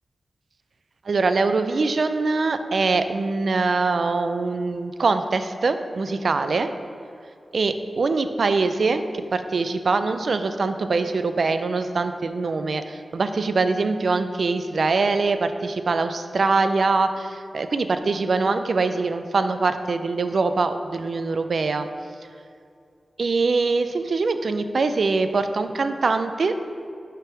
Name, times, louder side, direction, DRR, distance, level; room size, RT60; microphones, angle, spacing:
voice 1, 1.1-6.7 7.5-21.9 23.2-26.5, right 3 dB, 65° right, 9 dB, 0.3 m, -23 dB
5.6 x 3.6 x 5.8 m, 2.4 s
wide cardioid pair, 110°, 0 cm